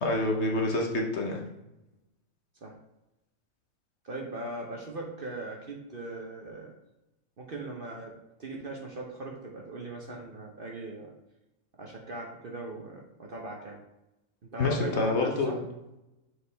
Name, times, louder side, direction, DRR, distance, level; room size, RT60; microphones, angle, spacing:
voice 1, 0.0-1.4 14.6-15.6, left 2 dB, 55° left, 1 dB, 1.0 m, -27 dB
voice 2, 4.0-6.7 7.4-11.1 11.8-13.8 14.4-15.6, right 2 dB, 45° right, 0 dB, 0.8 m, -39 dB
6.1 x 4.7 x 3.3 m, 0.92 s
omnidirectional pair, 1.5 m